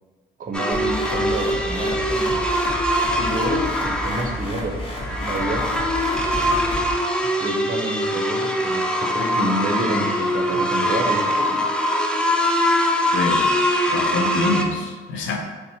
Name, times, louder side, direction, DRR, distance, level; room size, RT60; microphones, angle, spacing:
voice 1, 0.4-2.4 3.1-5.7 7.4-11.9, right 1 dB, 45° right, 3 dB, 0.6 m, -28 dB
sound 1, 0.5-14.6, equal, 5° left, 0.4 m, -22 dB
sound 2, 0.7-6.9, equal, 25° left, 0.8 m, -31 dB
voice 2, 13.1-13.5 13.9-15.4, left 3 dB, 75° left, 3 dB, 0.5 m, -25 dB
4.1 x 2.0 x 2.7 m, 1.4 s
cardioid pair, 90°, 20 cm